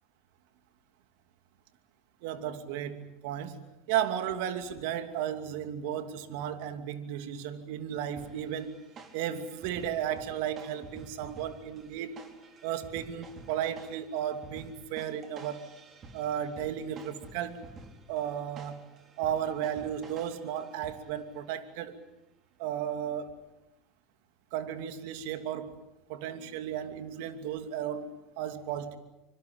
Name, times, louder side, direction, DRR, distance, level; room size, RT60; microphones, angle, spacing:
voice 1, 2.2-8.7 9.1-12.2 12.6-15.7 16.1-17.6 18.1-18.8 19.2-22.0 22.6-23.3 24.5-25.8 26.1-29.0, right 10 dB, 65° right, 9 dB, 2.7 m, -34 dB
sound 1, 8.2-21.3, right 3 dB, 40° right, 4.5 m, -51 dB
25.5 x 24.5 x 8.7 m, 0.93 s
hypercardioid pair, 85°, 0 cm